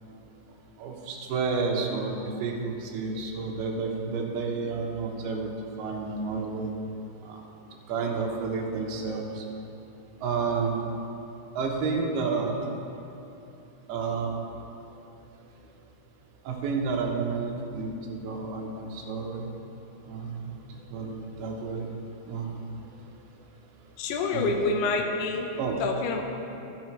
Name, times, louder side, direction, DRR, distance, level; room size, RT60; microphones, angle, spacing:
voice 1, 0.8-5.5 5.8-6.7 7.3-7.4 7.9-9.4 10.2-10.8 11.6-12.5 13.9-14.3 16.5-19.4 20.1-20.4 20.9-21.9 22.3-22.5 24.3-24.5 25.6-25.8, right 4 dB, 70° right, 0 dB, 2.7 m, -30 dB
voice 2, 24.0-25.5 25.8-26.2, left 3 dB, 80° left, 4 dB, 2.5 m, -27 dB
13.5 x 6.8 x 4.6 m, 2.9 s
omnidirectional pair, 5.1 m